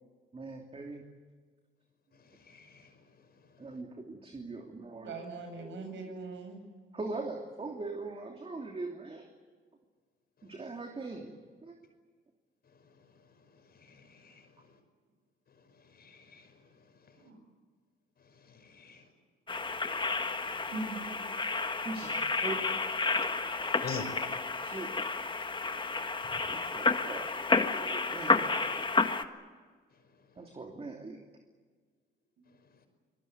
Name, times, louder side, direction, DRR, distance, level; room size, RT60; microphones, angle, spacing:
voice 1, 0.3-1.0 3.6-5.2 6.9-9.3 10.4-11.7 21.8-22.2 22.4-22.7 23.7-23.9 24.6-25.3 26.5-27.3 27.8-28.9 30.4-31.2, right 3 dB, 30° right, 3 dB, 2.9 m, -41 dB
voice 2, 2.1-3.8 10.4-10.7 12.7-14.8 15.5-17.3 18.2-19.1 19.6-20.0 20.4-20.7 23.5-24.1 26.3-26.6 30.3-30.5, left 5 dB, 50° left, 7 dB, 5.5 m, -48 dB
voice 3, 5.0-6.6 17.1-17.4 20.7-21.1, right 3 dB, 70° right, 5 dB, 7.7 m, -40 dB
sound 1, 19.5-29.2, left 3 dB, 25° left, 1.6 m, -31 dB
25.0 x 20.5 x 9.7 m, 1.5 s
cardioid pair, 90°, 20 cm